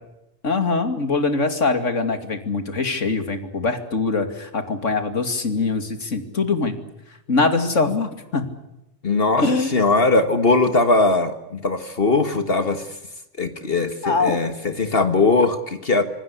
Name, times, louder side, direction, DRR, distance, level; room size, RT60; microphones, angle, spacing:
voice 1, 0.4-6.8 7.3-8.5 9.4-9.8 14.0-14.4, left 3 dB, 85° left, 8 dB, 2.9 m, -23 dB
voice 2, 9.0-9.4 9.7-12.9 13.4-16.0, left 3 dB, 50° left, 9 dB, 1.8 m, -20 dB
26.5 x 19.5 x 8.4 m, 0.87 s
omnidirectional pair, 1.2 m